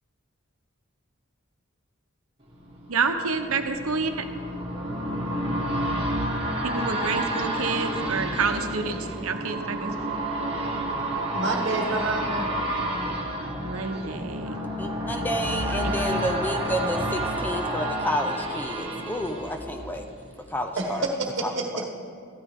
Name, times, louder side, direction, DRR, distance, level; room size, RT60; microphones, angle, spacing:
sound 1, 2.5-20.3 20.7-20.8, right 1 dB, 25° right, 1.7 m, -30 dB
voice 1, 2.9-4.2 6.6-10.3 13.6-14.6 15.8-16.3, right 4 dB, 80° right, 6 dB, 0.9 m, -29 dB
sound 2, 4.7-17.8, equal, 5° right, 1.8 m, -44 dB
voice 2, 11.3-12.5 20.8-21.9, right 2 dB, 55° right, 2 dB, 1.3 m, -28 dB
voice 3, 14.8-20.1 20.5-21.1 21.4-21.5, equal, 10° left, 5 dB, 0.4 m, -30 dB
13.5 x 12.5 x 3.6 m, 2.3 s
head